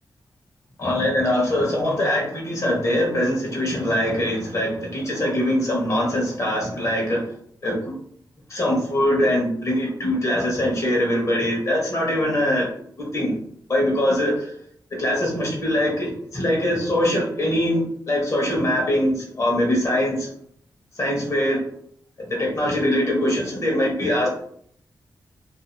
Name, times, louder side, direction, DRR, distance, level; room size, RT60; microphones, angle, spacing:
voice 1, 0.8-7.2 7.6-7.9 8.5-12.7 13.0-13.4 13.7-14.4 15.0-20.3 21.0-21.6 22.3-24.3, left 1 dB, 45° left, -3 dB, 1.1 m, -22 dB
2.7 x 2.5 x 2.6 m, 0.63 s
wide cardioid pair, 115°, 8 cm